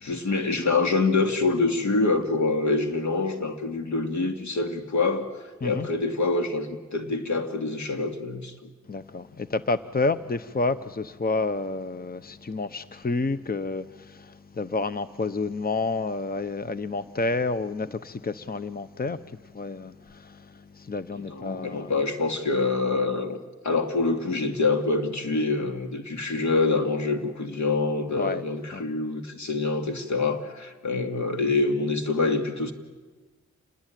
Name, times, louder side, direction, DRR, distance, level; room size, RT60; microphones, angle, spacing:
voice 1, 0.0-8.7 21.1-23.4 23.6-32.7, left 3 dB, 75° left, 2.6 m, -26 dB
voice 2, 8.9-19.2 19.5-20.4 20.8-21.9 28.2-28.4 28.7-28.8, left 3 dB, 30° left, 0.9 m, -29 dB
28.0 x 20.5 x 9.3 m
cardioid pair, 55°, 29 cm